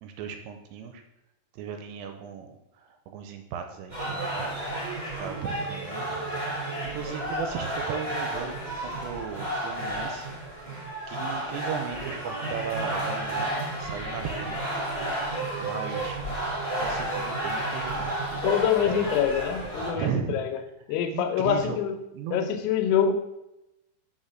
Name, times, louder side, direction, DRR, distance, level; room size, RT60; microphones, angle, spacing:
voice 1, 0.0-1.0 1.5-4.3 5.0-6.2 6.5-10.3 11.1-14.6 15.6-16.2 16.5-17.9 18.7-19.1 19.9-20.4 20.9-21.8 22.1-22.5, right 7 dB, 85° right, 6 dB, 2.8 m, -36 dB
sound 1, 3.9-19.9, right 1 dB, 15° right, 2.8 m, -32 dB
voice 2, 18.4-20.6 20.9-21.9 22.3-23.1, left 8 dB, 80° left, 7 dB, 3.1 m, -25 dB
6.7 x 5.6 x 6.2 m, 0.91 s
omnidirectional pair, 5.4 m